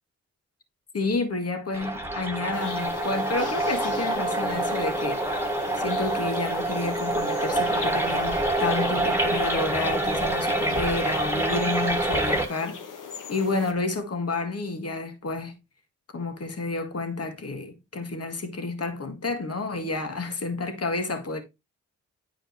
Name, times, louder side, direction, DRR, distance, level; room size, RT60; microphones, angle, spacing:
voice 1, 0.9-5.2 5.8-12.8 13.3-15.6 16.1-21.4, left 3 dB, 50° left, 1.9 m, -30 dB
sound 1, 1.7-12.5, right 2 dB, 5° right, 1.7 m, -26 dB
sound 2, 2.5-13.7, left 6 dB, 70° left, 1.2 m, -39 dB
9.5 x 4.8 x 3.0 m
supercardioid pair, 40°, 32 cm